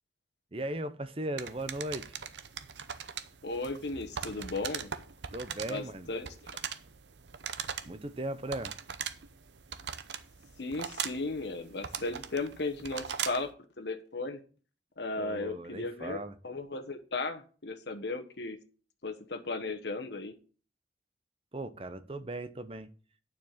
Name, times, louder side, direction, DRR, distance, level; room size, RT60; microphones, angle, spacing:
voice 1, 0.5-2.1 5.3-6.1 7.9-8.7 15.2-16.4 21.5-22.9, right 1 dB, 30° right, 0.7 m, -37 dB
sound 1, 1.4-13.5, right 8 dB, 80° right, 0.7 m, -41 dB
voice 2, 3.4-4.9 5.7-6.3 10.6-13.5 13.8-14.4 15.0-18.6 19.0-20.3, left 3 dB, 75° left, 1.1 m, -36 dB
9.1 x 4.8 x 7.2 m
head